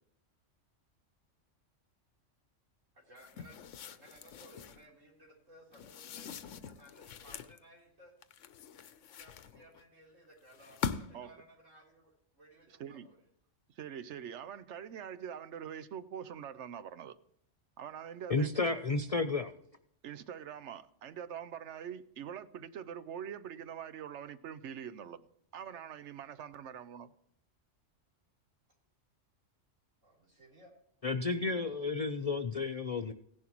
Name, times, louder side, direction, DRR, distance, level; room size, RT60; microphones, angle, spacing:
voice 1, 2.9-8.1 9.0-13.2 14.1-14.2 18.2-18.4 30.0-30.7, equal, 85° right, 4.0 m, -59 dB
sound 1, 3.2-4.9 5.7-7.6 8.2-9.8 10.5-11.3, left 7 dB, 80° left, 1.0 m, -43 dB
voice 2, 13.7-17.2 17.8-18.5 20.0-25.3 25.5-27.1, right 8 dB, 70° right, 0.9 m, -44 dB
voice 3, 18.3-19.5 31.0-33.1, left 3 dB, 50° left, 0.4 m, -32 dB
16.0 x 11.0 x 3.0 m
omnidirectional pair, 1.3 m